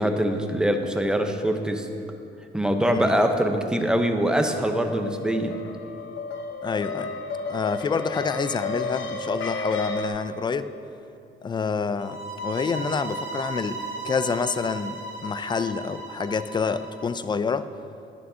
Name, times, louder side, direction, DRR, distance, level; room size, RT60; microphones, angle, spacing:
voice 1, 0.0-1.9 2.5-5.6, equal, 5° right, 5 dB, 0.7 m, -23 dB
sound 1, 4.2-10.1, left 3 dB, 75° left, 1.0 m, -33 dB
voice 2, 6.6-7.1 7.5-10.7 11.4-15.0 15.2-17.7, left 5 dB, 25° left, 13 dB, 0.3 m, -27 dB
sound 2, 12.0-17.0, right 3 dB, 65° right, 2.1 m, -36 dB
11.0 x 9.6 x 2.8 m, 2.6 s
cardioid pair, 90°, 20 cm